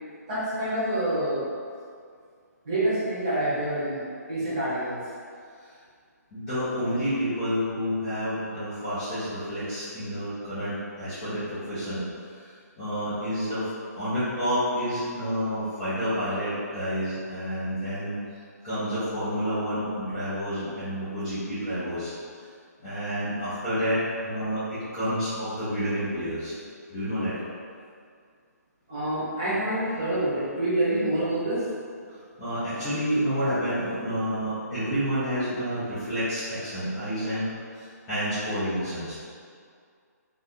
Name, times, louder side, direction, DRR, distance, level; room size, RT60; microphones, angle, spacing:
voice 1, 0.3-1.4 2.6-5.0 28.9-31.6, right 1 dB, 20° right, -11 dB, 0.8 m, -27 dB
voice 2, 6.3-12.0 12.8-18.2 18.6-22.1 22.8-24.0 24.2-26.5 26.9-27.3 32.4-37.4 37.8-39.1, equal, 5° left, -18 dB, 0.4 m, -29 dB
2.7 x 2.2 x 3.4 m, 2.2 s
hypercardioid pair, 180°, 9 cm